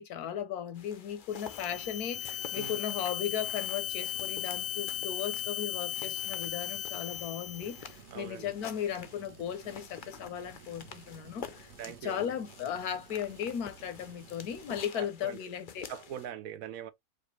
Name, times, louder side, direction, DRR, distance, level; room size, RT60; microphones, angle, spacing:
voice 1, 0.0-15.9, left 9 dB, 85° left, 1.3 m, -36 dB
sound 1, 0.7-16.3, left 7 dB, 55° left, 0.6 m, -50 dB
sound 2, 1.3-7.9, left 12 dB, 70° left, 0.9 m, -37 dB
sound 3, 1.7-14.8, right 8 dB, 50° right, 1.1 m, -55 dB
voice 2, 8.1-8.5 11.8-12.4 14.9-15.4 15.9-16.9, right 10 dB, 70° right, 1.1 m, -42 dB
5.0 x 2.4 x 3.1 m
omnidirectional pair, 1.6 m